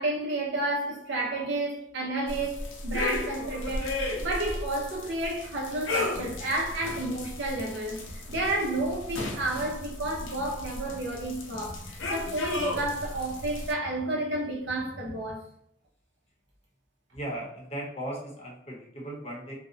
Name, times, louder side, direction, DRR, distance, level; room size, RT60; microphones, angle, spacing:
voice 1, 0.0-8.0 8.3-15.4, right 2 dB, 65° right, 0.7 m, -31 dB
sound 1, 2.3-13.7, left 2 dB, 85° left, 0.5 m, -35 dB
Computer keyboard, 5.9-15.3, equal, 80° right, 1.2 m, -47 dB
voice 2, 17.1-19.5, right 1 dB, 35° left, 0.8 m, -37 dB
2.6 x 2.0 x 2.5 m
head